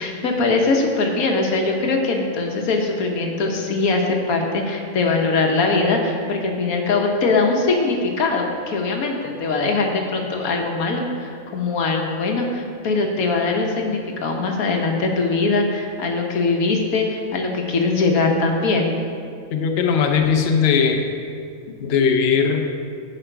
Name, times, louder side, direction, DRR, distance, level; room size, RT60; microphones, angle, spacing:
voice 1, 0.0-18.9, left 3 dB, 85° left, 2 dB, 1.4 m, -21 dB
voice 2, 19.5-21.0 21.6-22.6, left 6 dB, 55° left, 4 dB, 0.8 m, -19 dB
10.0 x 5.6 x 4.5 m, 2.3 s
omnidirectional pair, 1.5 m